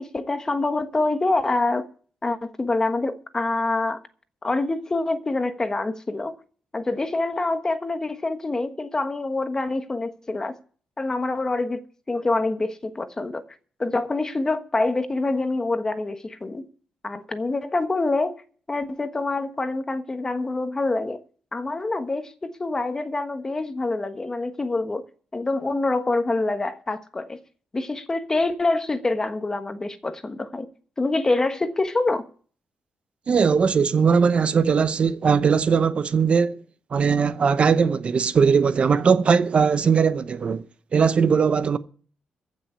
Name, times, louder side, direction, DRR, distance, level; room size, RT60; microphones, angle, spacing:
voice 1, 0.0-1.9 2.2-4.0 4.4-6.4 6.7-10.5 11.0-11.8 12.1-13.4 13.8-16.7 17.0-18.4 18.7-21.2 21.5-25.0 25.3-27.4 27.7-30.7 31.0-32.2, left 2 dB, 20° left, 1.3 m, -26 dB
voice 2, 33.3-36.6 36.9-40.6 40.9-41.8, right 6 dB, 45° right, 0.8 m, -19 dB
15.0 x 6.3 x 8.7 m
cardioid pair, 120°, 3 cm